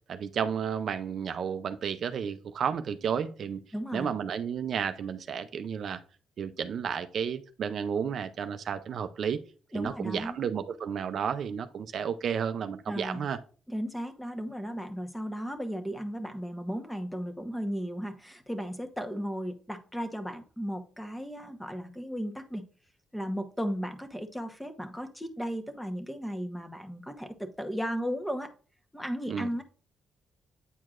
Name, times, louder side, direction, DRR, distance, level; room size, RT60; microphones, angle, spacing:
voice 1, 0.1-3.6 3.9-6.0 6.4-9.4 9.7-13.4 29.3-29.5, right 7 dB, 60° right, 10 dB, 0.5 m, -32 dB
voice 2, 3.7-4.1 9.7-10.4 12.9-13.2 13.7-22.6 23.1-28.5 28.9-29.6, equal, 5° left, 6 dB, 1.0 m, -35 dB
8.8 x 4.6 x 2.5 m, 0.39 s
cardioid pair, 90°, 0 cm